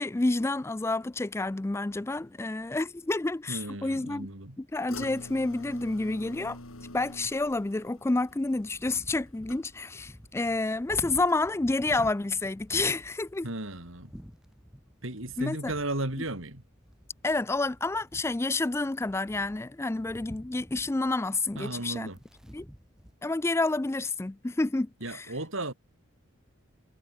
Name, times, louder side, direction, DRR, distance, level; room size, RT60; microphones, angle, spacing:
voice 1, 0.0-4.3 4.6-6.6 6.9-13.5 15.4-15.7 17.2-22.1 22.5-22.7 23.2-25.3, left 2 dB, 10° left, 0.3 m, -29 dB
voice 2, 3.5-4.6 13.4-14.1 15.0-16.6 21.6-22.2 25.0-25.7, right 2 dB, 70° right, 4.2 m, -35 dB
sound 1, 4.9-10.1 10.4-10.9 11.3-11.4, left 2 dB, 85° left, 4.6 m, -46 dB
sound 2, 8.3-23.1, equal, 5° right, 2.4 m, -50 dB
head